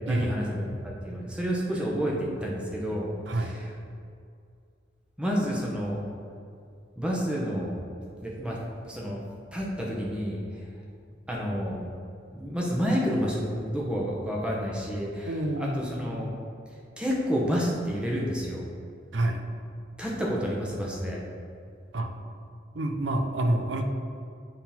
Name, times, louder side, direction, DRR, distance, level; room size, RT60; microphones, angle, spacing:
voice 1, 0.0-3.1 3.4-3.7 5.2-6.0 7.0-7.7 8.2-8.6 8.8-9.2 9.5-10.6 11.3-11.8 12.3-15.3 15.6-16.3 17.0-18.6 20.0-21.2, equal, 5° right, -3 dB, 1.0 m, -29 dB
voice 2, 15.3-16.1 19.1-19.4 21.9-22.1 22.7-23.9, right 1 dB, 80° right, 5 dB, 0.6 m, -28 dB
7.9 x 3.8 x 4.3 m, 2.3 s
head